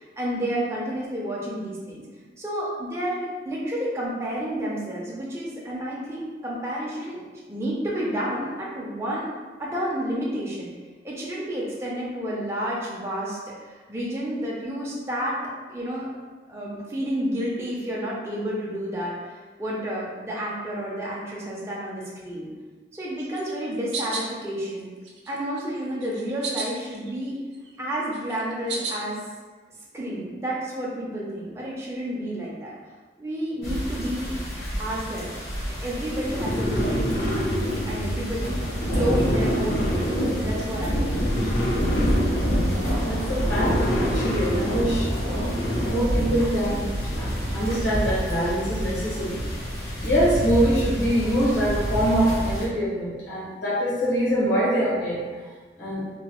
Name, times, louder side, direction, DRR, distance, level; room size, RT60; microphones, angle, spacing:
voice 1, 0.0-2.0 2.4-7.2 7.5-9.3 9.6-10.7 11.0-16.1 16.5-19.1 19.6-22.5 22.9-24.9 25.3-27.4 27.8-29.2 29.9-32.7 33.2-34.3 34.8-35.3 35.8-40.1 40.4-41.3, equal, 15° right, -5 dB, 0.4 m, -30 dB
sound 1, 23.2-24.3 24.8-25.6 26.0-27.1 27.4-29.1, right 4 dB, 75° right, 0.5 m, -34 dB
sound 2, 33.6-52.7, equal, 65° left, 0.9 m, -28 dB
sound 3, 36.0-45.9, equal, 45° left, 0.4 m, -28 dB
voice 2, 43.0-45.5 45.9-49.4 50.0-55.2 55.8-56.0, equal, 85° left, -7 dB, 1.2 m, -24 dB
3.0 x 2.2 x 2.9 m, 1.4 s
head